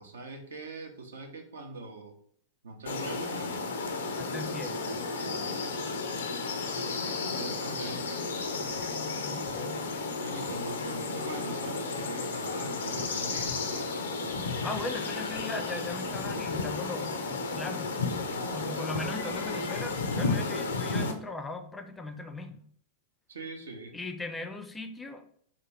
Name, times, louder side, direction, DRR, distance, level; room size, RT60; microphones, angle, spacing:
voice 1, 0.0-2.1 2.6-3.7 5.2-5.7 7.2-8.2 10.2-13.9 18.3-18.8 23.3-24.0, right 3 dB, 75° right, 4 dB, 0.6 m, -42 dB
sound 1, 2.9-21.1, left 3 dB, 70° left, 0.4 m, -33 dB
voice 2, 4.2-5.0 7.3-7.9 9.0-9.8 14.6-17.9 18.5-22.6 23.9-25.2, left 2 dB, 10° left, 5 dB, 0.4 m, -39 dB
2.5 x 2.5 x 3.1 m, 0.62 s
figure-of-eight pair, 95°, 0 cm